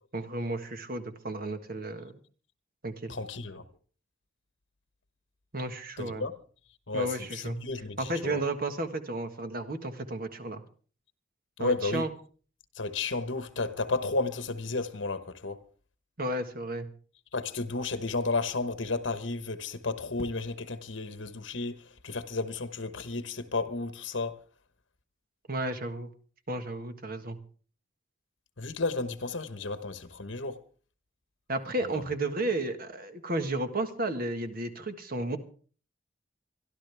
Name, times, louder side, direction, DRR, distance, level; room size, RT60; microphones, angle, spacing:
voice 1, 0.1-2.1 2.8-3.1 5.5-6.2 6.9-7.6 8.0-10.6 11.6-12.1 16.2-16.9 25.5-26.1 26.5-27.4 31.5-35.4, right 2 dB, 50° right, 1.6 m, -33 dB
voice 2, 3.1-3.6 6.0-6.4 6.9-8.4 11.6-12.0 12.7-15.6 17.3-21.8 22.0-24.4 28.6-30.6 31.9-32.0, left 3 dB, 70° left, 1.3 m, -32 dB
25.0 x 11.5 x 3.5 m
head